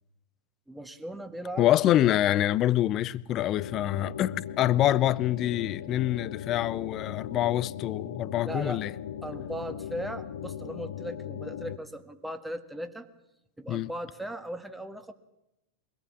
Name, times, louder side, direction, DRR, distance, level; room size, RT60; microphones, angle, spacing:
voice 1, 0.7-1.9 8.4-8.8 9.2-13.1 13.6-15.1, right 1 dB, 5° right, 1.7 m, -38 dB
voice 2, 1.6-8.9 13.7-13.9, left 13 dB, 35° left, 0.7 m, -26 dB
sound 1, 3.5-11.8, left 9 dB, 60° left, 1.0 m, -38 dB
24.0 x 17.5 x 7.4 m
figure-of-eight pair, 90°, 0 cm